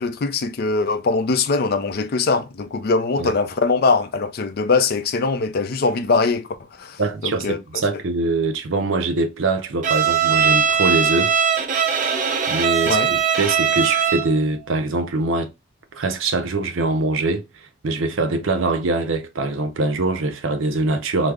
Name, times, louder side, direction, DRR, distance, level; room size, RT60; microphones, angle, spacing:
voice 1, 0.0-6.5 6.8-7.6 12.8-13.1, left 4 dB, 50° left, 0.4 m, -21 dB
voice 2, 7.0-11.3 12.5-15.5 15.9-17.4 17.8-21.3, right 3 dB, 80° right, 0.6 m, -23 dB
Bowed string instrument, 9.8-14.4, right 7 dB, 40° right, 0.5 m, -20 dB
4.9 x 2.1 x 2.3 m
head